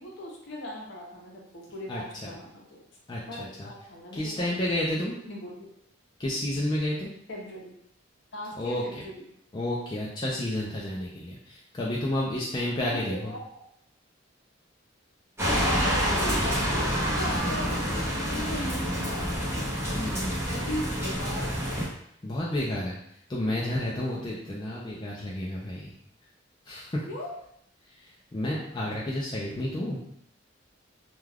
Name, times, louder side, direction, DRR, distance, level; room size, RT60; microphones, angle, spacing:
voice 1, 0.0-2.8 3.3-4.6 5.3-5.7 7.3-7.7 8.3-9.2 12.7-13.6 15.5-19.7 20.4-21.7 27.1-27.4, left 1 dB, 60° left, -2 dB, 0.7 m, -39 dB
voice 2, 1.9-2.3 3.1-3.7 4.1-5.2 6.2-7.1 8.6-8.8 9.5-13.3 19.9-20.5 22.2-23.0 23.3-25.9 26.7-27.0 27.9-30.0, left 1 dB, 20° left, -5 dB, 0.3 m, -31 dB
sound 1, 15.4-21.8, equal, 10° right, 0.8 m, -27 dB
2.3 x 2.2 x 3.2 m, 0.69 s
head